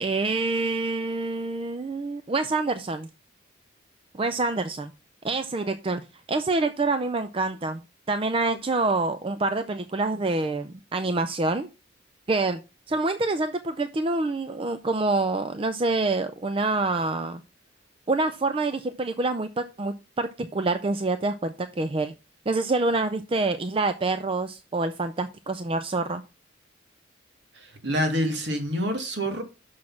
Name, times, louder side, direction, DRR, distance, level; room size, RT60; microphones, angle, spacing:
voice 1, 0.0-3.1 4.1-4.9 5.2-7.8 8.1-11.7 12.3-12.6 12.9-17.4 18.1-22.1 22.5-26.2, right 3 dB, 30° right, 0.4 m, -26 dB
voice 2, 27.6-29.4, equal, 60° right, 2.1 m, -27 dB
6.3 x 6.2 x 5.7 m
head